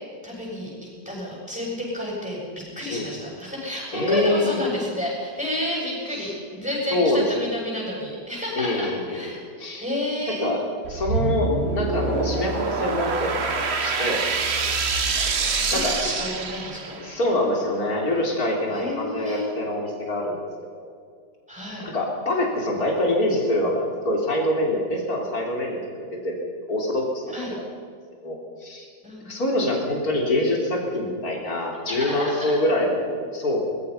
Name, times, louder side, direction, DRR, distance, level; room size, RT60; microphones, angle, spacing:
voice 1, 0.2-9.4 9.8-10.5 15.7-17.0 18.7-19.4 21.5-21.9 27.3-27.5 29.0-29.3 31.9-32.5, left 1 dB, 5° right, -6 dB, 7.8 m, -30 dB
voice 2, 3.9-4.6 6.9-7.2 8.6-9.9 10.4-10.6 10.9-14.2 15.1-15.3 15.7-15.9 17.0-20.4 20.8-20.9 21.8-27.6 28.2-28.9 29.3-33.6, left 1 dB, 55° left, -1 dB, 4.0 m, -25 dB
sound 1, 10.8-17.1, right 4 dB, 40° right, 1.4 m, -26 dB
23.0 x 21.0 x 5.7 m, 2.1 s
omnidirectional pair, 1.9 m